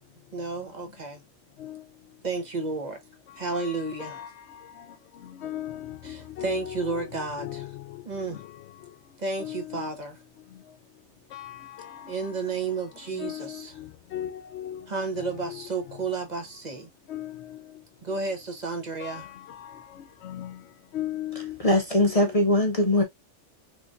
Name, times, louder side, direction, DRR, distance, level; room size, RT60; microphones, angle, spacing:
voice 1, 0.3-1.2 2.2-3.0 3.4-4.2 6.0-7.6 8.0-8.4 9.2-10.2 12.1-13.7 14.9-16.9 18.0-19.3, right 4 dB, 40° right, 0.9 m, -32 dB
voice 2, 3.5-4.9 5.2-8.5 9.4-9.9 11.3-12.1 13.1-14.9 15.2-16.0 17.1-17.6 19.0-20.6 20.9-21.6 22.0-22.5, left 12 dB, 70° left, 0.8 m, -38 dB
voice 3, 21.6-23.0, left 1 dB, 45° left, 0.5 m, -21 dB
3.6 x 3.2 x 2.4 m
omnidirectional pair, 1.3 m